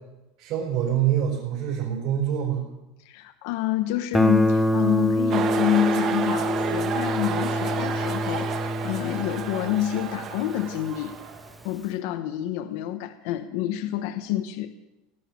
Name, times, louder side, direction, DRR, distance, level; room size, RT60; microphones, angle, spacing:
voice 1, 0.4-2.6, right 10 dB, 50° right, -4 dB, 4.4 m, -25 dB
voice 2, 3.0-11.2 11.6-14.7, left 12 dB, 60° left, 9 dB, 0.9 m, -28 dB
Guitar, 4.1-10.9, left 1 dB, ahead, 0.6 m, -26 dB
sound 1, 5.3-11.6, right 8 dB, 35° right, 1.2 m, -31 dB
17.5 x 9.3 x 7.2 m, 0.98 s
supercardioid pair, 165°, 0 cm